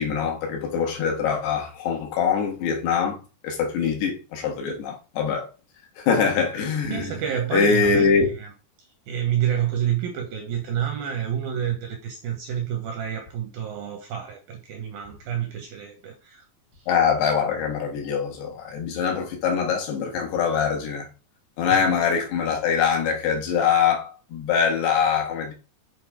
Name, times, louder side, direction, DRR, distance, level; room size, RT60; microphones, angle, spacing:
voice 1, 0.0-5.5 6.0-7.2 7.5-8.3 16.9-21.1 21.6-25.5, left 6 dB, 70° left, 3.3 m, -23 dB
voice 2, 6.9-8.5 9.1-16.4 21.7-22.1, right 9 dB, 75° right, 2.2 m, -29 dB
7.9 x 3.9 x 4.8 m
omnidirectional pair, 5.1 m